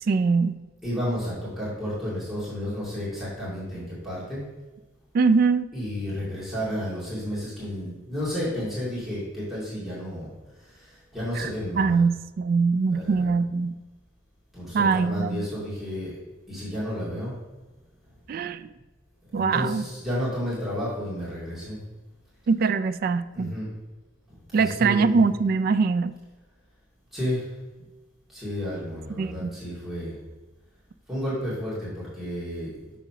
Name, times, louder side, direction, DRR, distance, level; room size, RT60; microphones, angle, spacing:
voice 1, 0.1-0.6 5.1-5.7 11.3-11.5 11.8-13.7 14.7-15.4 18.3-18.7 19.3-19.9 22.5-23.5 24.5-26.1 29.2-29.6, right 4 dB, 50° right, 10 dB, 0.3 m, -23 dB
voice 2, 0.8-4.4 5.7-10.3 10.7-12.0 12.9-13.3 14.5-16.1 16.5-17.3 19.3-21.8 23.3-23.7 24.5-25.1 27.1-27.5 28.3-30.2 31.1-32.7, equal, ahead, -10 dB, 2.3 m, -31 dB
6.1 x 4.0 x 5.7 m, 1.2 s
head